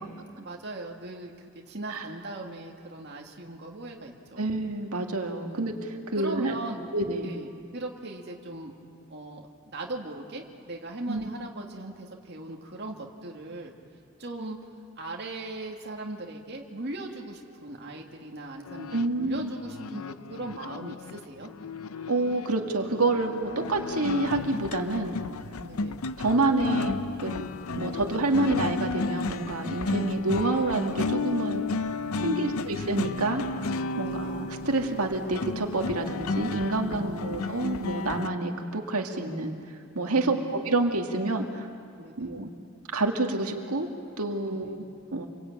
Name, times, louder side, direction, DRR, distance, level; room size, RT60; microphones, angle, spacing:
voice 1, 0.4-4.5 5.4-5.6 6.1-6.9 7.2-8.7 9.1-13.7 14.2-14.6 15.0-20.0 20.3-21.5 25.6-26.0 30.0-30.1 32.1-32.6 34.0-34.4 36.8-37.4 40.2-40.7 42.0-42.3 44.4-44.8, right 2 dB, 50° right, 0 dB, 2.4 m, -39 dB
voice 2, 4.4-6.5 6.9-7.3 11.1-11.3 18.9-19.5 22.1-25.2 26.2-27.4 27.8-31.7 32.2-33.4 34.0-39.6 39.9-41.7 42.2-42.5 42.9-43.9 44.2-44.8 45.1-45.3, right 2 dB, 90° right, 3 dB, 2.0 m, -28 dB
sound 1, 18.7-38.3, left 3 dB, 80° left, 0.6 m, -33 dB
28.0 x 23.0 x 8.9 m, 2.3 s
head